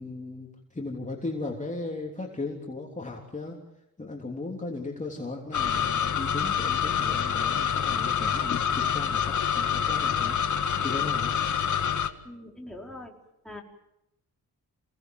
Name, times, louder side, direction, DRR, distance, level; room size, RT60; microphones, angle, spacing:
voice 1, 0.0-3.6 4.0-11.4, left 3 dB, 20° left, 0 dB, 3.4 m, -36 dB
sound 1, 5.5-12.1, left 8 dB, 55° left, 1.9 m, -27 dB
voice 2, 12.2-13.1 13.4-13.6, left 1 dB, ahead, 0 dB, 4.8 m, -42 dB
28.5 x 18.5 x 7.8 m, 0.85 s
wide cardioid pair, 115°, 36 cm